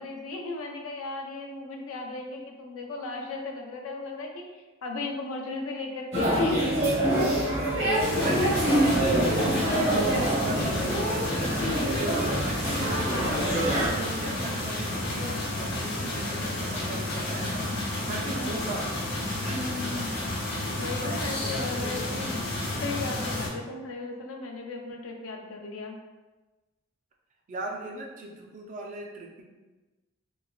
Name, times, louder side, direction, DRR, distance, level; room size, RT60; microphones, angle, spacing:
voice 1, 0.0-6.6 18.4-18.5 19.5-20.1 20.8-22.4 22.8-26.0, left 3 dB, 85° left, 1 dB, 0.4 m, -36 dB
sound 1, 6.1-13.9, right 1 dB, 60° right, 0.9 m, -25 dB
voice 2, 7.8-18.9 19.3-19.8 20.2-20.4 21.0-22.0 27.5-29.4, right 2 dB, 40° right, 0 dB, 0.3 m, -38 dB
sound 2, 8.0-23.5, left 1 dB, 55° left, 0.7 m, -31 dB
3.1 x 2.1 x 2.2 m, 1.2 s
head